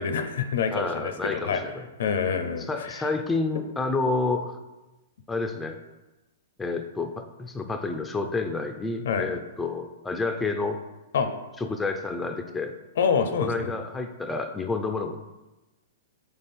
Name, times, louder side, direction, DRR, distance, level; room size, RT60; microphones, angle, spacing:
voice 1, 0.0-1.6 2.0-3.1 9.0-9.3 11.1-11.3 13.0-13.7, left 6 dB, 70° left, 7 dB, 0.5 m, -26 dB
voice 2, 0.7-1.8 2.6-4.5 5.3-5.8 6.6-10.8 11.6-12.7 13.4-15.2, left 3 dB, 10° left, 5 dB, 0.3 m, -29 dB
3.4 x 3.4 x 4.2 m, 1.1 s
hypercardioid pair, 135°, 0 cm